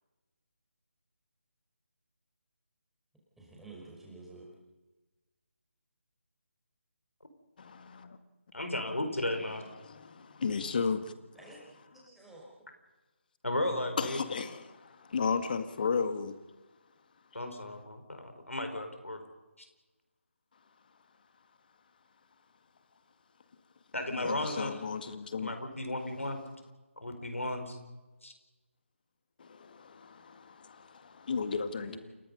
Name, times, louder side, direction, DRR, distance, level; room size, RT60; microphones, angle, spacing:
voice 1, 3.4-4.5 11.3-11.6 11.9-12.4 31.8-32.0, right 2 dB, ahead, 5.1 m, -50 dB
voice 2, 7.6-8.2 9.8-11.1 14.0-16.4 24.1-25.5 29.4-32.0, left 5 dB, 40° left, 1.8 m, -34 dB
voice 3, 8.5-9.6 13.4-14.2 17.3-19.2 19.6-19.7 23.9-24.8 25.4-26.4 27.0-27.8 28.2-28.3, left 1 dB, 80° left, 4.6 m, -35 dB
29.5 x 17.5 x 5.5 m
figure-of-eight pair, 155°, 7 cm